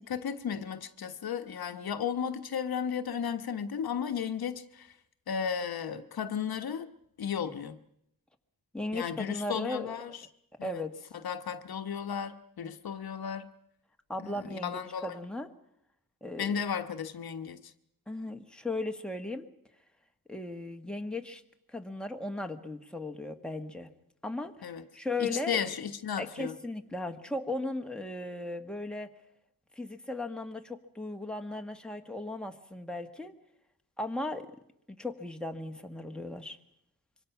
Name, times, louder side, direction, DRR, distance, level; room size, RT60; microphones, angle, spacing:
voice 1, 0.0-4.9 5.3-6.9 7.2-7.8 8.9-10.1 10.6-10.8 11.2-13.5 14.2-15.2 16.4-17.6 24.6-24.8 25.2-26.5, left 7 dB, 80° left, 1.2 m, -34 dB
voice 2, 8.7-9.9 10.6-10.9 14.1-15.5 16.2-16.6 18.1-19.5 20.3-21.4 21.7-23.9 24.2-24.7 24.9-25.6 26.2-29.1 29.7-33.3 34.0-34.5 34.9-36.6, left 2 dB, ahead, 1.5 m, -36 dB
25.5 x 24.5 x 5.8 m
wide cardioid pair, 125°, 36 cm